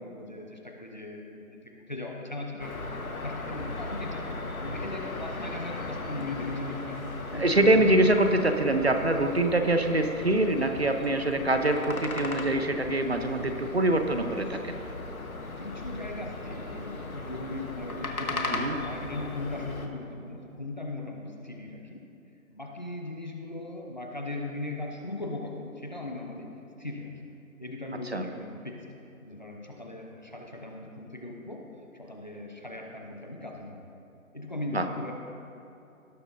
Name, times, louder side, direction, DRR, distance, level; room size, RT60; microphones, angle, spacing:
voice 1, 0.0-7.0 7.3-7.8 15.6-22.0 22.5-26.5 26.8-27.1 27.6-28.8 29.2-31.7 31.9-33.8 34.3-35.1, left 2 dB, 30° left, 1 dB, 0.8 m, -38 dB
sound 1, 2.6-19.9, left 2 dB, 80° left, 1.5 m, -37 dB
voice 2, 7.3-14.8 18.5-18.8 28.1-28.2 34.7-34.8, right 1 dB, 50° right, 6 dB, 0.7 m, -24 dB
18.0 x 7.8 x 2.7 m, 2.8 s
figure-of-eight pair, 170°, 42 cm